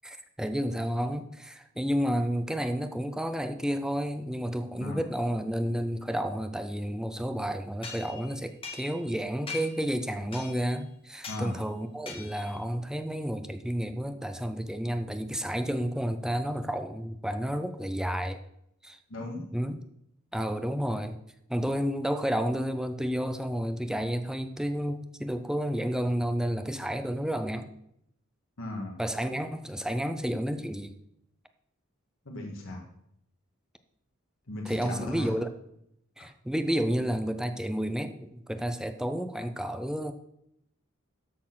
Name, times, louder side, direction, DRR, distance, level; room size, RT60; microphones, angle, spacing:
voice 1, 0.0-18.4 18.8-19.0 19.5-19.8 20.3-21.2 21.5-27.7 29.0-30.9 34.7-35.5 36.2-40.1, equal, 5° right, 8 dB, 0.5 m, -31 dB
sound 1, 7.8-9.2 9.5-9.9 10.3-10.8 11.2-11.5 12.1-12.6, left 5 dB, 25° left, 1.8 m, -41 dB
voice 2, 11.3-11.6 19.1-19.5 28.6-28.9 32.2-32.8 34.5-35.4, left 1 dB, 65° left, -1 dB, 1.7 m, -36 dB
13.0 x 4.4 x 5.9 m, 0.76 s
head